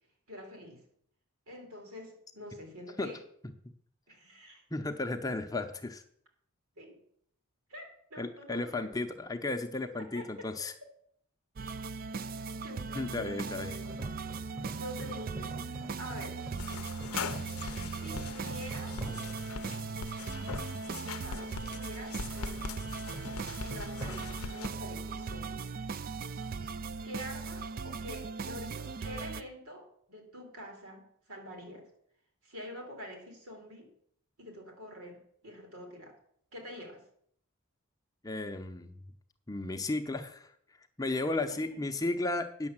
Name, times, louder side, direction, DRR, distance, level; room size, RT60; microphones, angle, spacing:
voice 1, 0.3-0.8 1.5-3.2 4.1-4.6 6.8-7.0 7.7-8.9 10.0-10.5 12.6-14.2 14.6-16.4 17.9-19.0 21.0-22.7 23.6-25.6 27.0-31.9 32.4-33.9 34.4-36.2 36.5-37.0 41.3-41.8, equal, 80° right, 2 dB, 3.4 m, -46 dB
voice 2, 4.7-6.0 8.2-10.7 12.9-13.8 38.2-38.9 39.5-40.5 41.0-42.7, left 2 dB, 15° left, 6 dB, 0.6 m, -34 dB
sound 1, 11.6-29.4, right 4 dB, 40° right, 0.3 m, -39 dB
sound 2, 13.6-25.5, right 1 dB, 10° right, 0.9 m, -47 dB
sound 3, 16.6-24.7, left 5 dB, 75° left, 0.6 m, -42 dB
9.6 x 7.0 x 7.3 m, 0.65 s
head